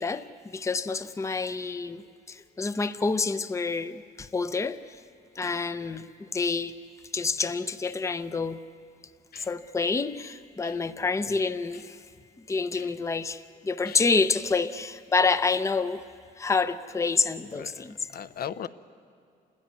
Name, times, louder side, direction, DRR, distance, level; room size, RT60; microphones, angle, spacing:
voice 1, 0.0-5.0 5.4-6.7 7.1-8.6 9.4-12.0 12.5-16.0 16.4-18.1, left 4 dB, 15° left, 12 dB, 0.6 m, -28 dB
voice 2, 17.5-18.7, left 8 dB, 60° left, 13 dB, 0.7 m, -39 dB
28.5 x 13.5 x 9.6 m, 2.3 s
cardioid pair, 120°, 17 cm